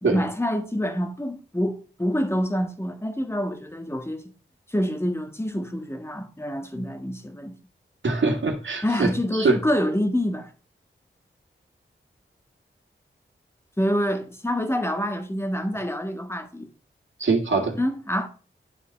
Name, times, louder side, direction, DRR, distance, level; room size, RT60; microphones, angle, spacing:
voice 1, 0.0-4.3 4.7-7.6 8.8-10.5 13.8-16.7 17.7-18.3, equal, 10° left, 1.6 m, -27 dB
voice 2, 8.0-9.6 17.2-17.7, right 3 dB, 65° right, 2.0 m, -23 dB
11.5 x 3.9 x 3.4 m
cardioid pair, 50°, 21 cm